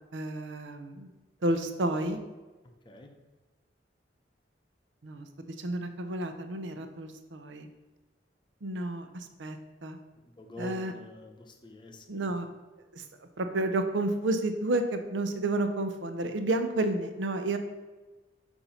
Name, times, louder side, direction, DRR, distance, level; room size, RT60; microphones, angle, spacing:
voice 1, 0.1-1.1 1.4-2.2 5.0-7.7 8.6-10.0 10.6-10.9 12.1-12.5 12.9-13.0 13.4-17.6, right 2 dB, 90° right, 7 dB, 0.6 m, -31 dB
voice 2, 10.2-12.4, left 1 dB, 25° left, 3 dB, 0.7 m, -46 dB
7.0 x 2.7 x 5.6 m, 1.2 s
head